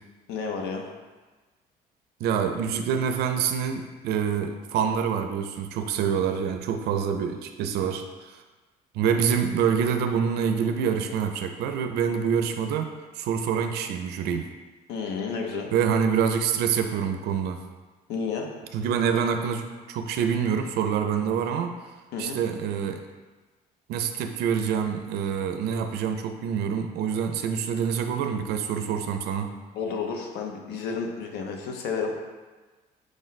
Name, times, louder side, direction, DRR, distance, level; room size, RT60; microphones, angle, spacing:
voice 1, 0.3-0.9 9.0-9.1 14.9-15.7 18.1-18.5 22.1-22.4 29.7-32.2, left 5 dB, 85° left, 2 dB, 0.6 m, -31 dB
voice 2, 2.2-8.3 8.9-14.5 15.7-17.6 18.7-21.7 22.2-23.1 23.9-29.5, right 7 dB, 75° right, 7 dB, 0.4 m, -26 dB
4.8 x 2.1 x 3.9 m, 1.3 s
cardioid pair, 110°, 17 cm